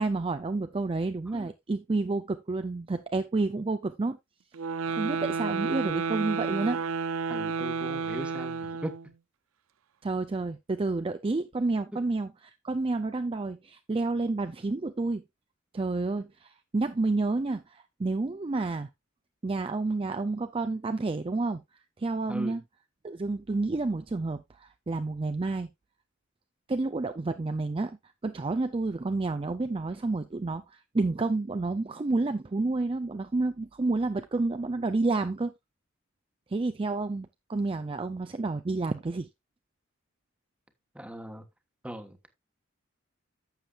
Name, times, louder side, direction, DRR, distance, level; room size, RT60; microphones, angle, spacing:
voice 1, 0.0-4.2 4.9-6.8 10.0-15.2 15.7-18.9 19.4-21.6 22.0-22.6 23.0-25.7 26.7-28.0 28.2-35.5 36.5-39.3, right 3 dB, 25° right, 0.4 m, -30 dB
sound 1, 4.5-9.1, right 5 dB, 85° right, 0.5 m, -31 dB
voice 2, 7.3-8.9 22.3-22.6 40.9-41.4 41.8-42.2, equal, 5° right, 1.2 m, -39 dB
11.5 x 7.5 x 2.4 m
head